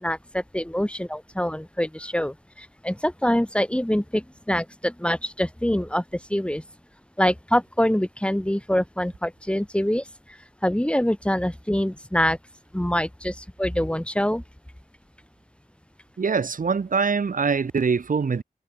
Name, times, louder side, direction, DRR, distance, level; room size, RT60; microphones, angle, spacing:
voice 1, 0.0-6.0 6.3-6.6 7.2-10.0 10.6-12.4 12.7-14.4, equal, 5° left, 1.7 m, -25 dB
voice 2, 16.2-18.4, right 5 dB, 70° right, 0.8 m, -23 dB
wide cardioid pair, 70°, 14 cm